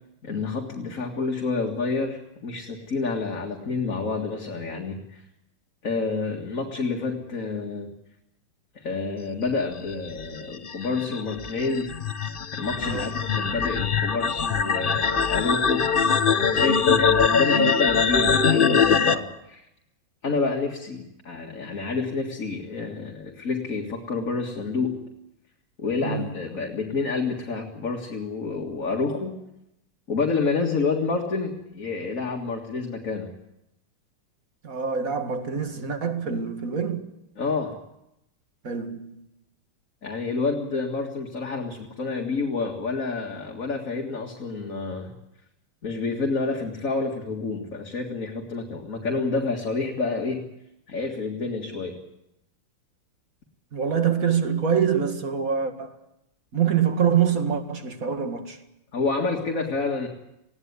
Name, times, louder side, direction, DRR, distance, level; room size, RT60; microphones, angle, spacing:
voice 1, 0.2-5.2 5.8-7.9 8.8-11.9 12.5-15.9 16.4-19.7 20.2-25.0 25.8-29.4 30.1-33.3 37.4-37.8 40.0-45.1 45.8-50.5 50.9-52.0 58.9-60.1, left 4 dB, 40° left, 2.3 m, -28 dB
sound 1, 9.9-19.1, left 6 dB, 65° left, 0.5 m, -22 dB
voice 2, 34.6-37.1 38.6-39.2 53.7-55.9 56.5-58.6, right 7 dB, 40° right, 2.3 m, -25 dB
20.0 x 16.5 x 9.7 m
omnidirectional pair, 2.4 m